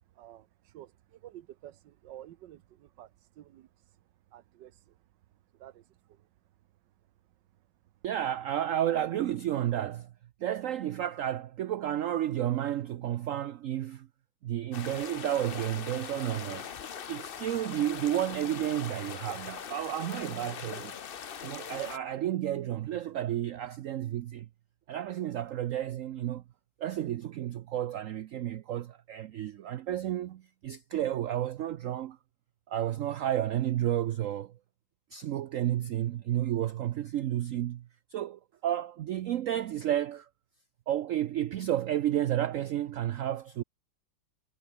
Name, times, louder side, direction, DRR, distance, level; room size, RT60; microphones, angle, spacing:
voice 1, 0.1-3.7 4.3-5.0 5.5-6.3, right 13 dB, 85° right, 1.4 m, -51 dB
voice 2, 8.0-10.1 10.4-14.1 14.4-16.7 17.1-21.0 21.4-24.5 24.9-26.4 26.8-32.2 32.7-34.5 35.1-37.9 38.1-40.3 40.9-43.6, right 12 dB, 70° right, 0.8 m, -31 dB
sound 1, 14.7-22.0, left 8 dB, 50° left, 0.7 m, -41 dB
omnidirectional pair, 1.9 m